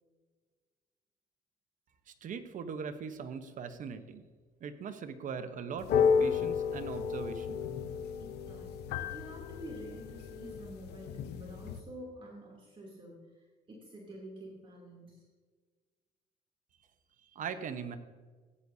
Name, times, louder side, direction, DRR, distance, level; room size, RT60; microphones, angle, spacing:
voice 1, 2.1-4.2 4.6-7.6 17.3-18.0, right 6 dB, 50° right, 9 dB, 0.9 m, -40 dB
sound 1, 5.8-11.8, left 6 dB, 75° left, 0.8 m, -32 dB
voice 2, 8.2-8.8 9.1-15.2, right 1 dB, 30° right, -3 dB, 2.9 m, -48 dB
15.0 x 9.5 x 2.7 m, 1.4 s
cardioid pair, 110°, 17 cm